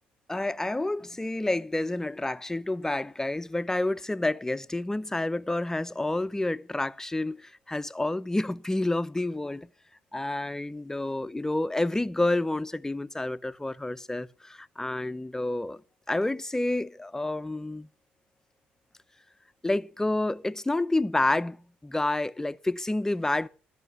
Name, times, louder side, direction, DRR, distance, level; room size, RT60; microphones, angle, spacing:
voice 1, 0.3-9.7 10.1-15.8 16.1-17.9 19.6-23.5, left 2 dB, 10° left, 0.7 m, -29 dB
13.5 x 5.9 x 8.3 m
hypercardioid pair, 55°, 4 cm